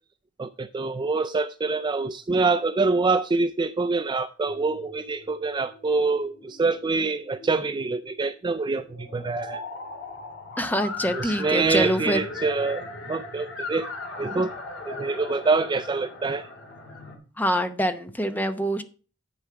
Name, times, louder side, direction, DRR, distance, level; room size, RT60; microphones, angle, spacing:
voice 1, 0.4-9.6 11.1-13.9 14.2-14.5 14.9-16.5, right 3 dB, 25° right, 0.3 m, -25 dB
sound 1, 4.5-17.2, left 3 dB, 65° left, 2.9 m, -39 dB
voice 2, 10.6-12.2 17.4-18.8, equal, 10° left, 0.8 m, -25 dB
9.0 x 6.8 x 4.7 m
head